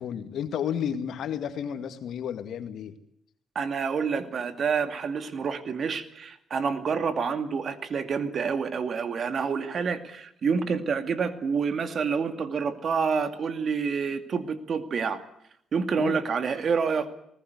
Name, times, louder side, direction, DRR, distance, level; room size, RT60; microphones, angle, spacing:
voice 1, 0.0-3.0 16.0-16.2, left 8 dB, 70° left, 9 dB, 2.2 m, -32 dB
voice 2, 3.5-15.2 15.7-17.2, right 5 dB, 50° right, 9 dB, 2.4 m, -28 dB
20.0 x 19.5 x 9.6 m, 0.72 s
cardioid pair, 90°, 0 cm